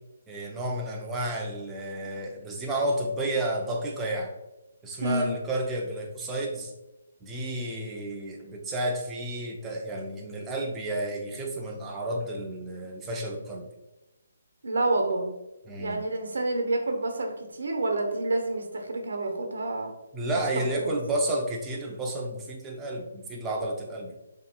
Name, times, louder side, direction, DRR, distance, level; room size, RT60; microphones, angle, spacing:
voice 1, 0.3-4.3 4.8-6.7 7.2-13.7 15.7-16.1 20.1-24.2, right 1 dB, 10° right, -1 dB, 0.5 m, -31 dB
voice 2, 5.0-5.4 14.6-15.3 15.8-19.9 20.5-20.9, right 2 dB, 90° right, 4 dB, 0.9 m, -28 dB
5.4 x 3.0 x 2.3 m, 1.0 s
hypercardioid pair, 170°, 0 cm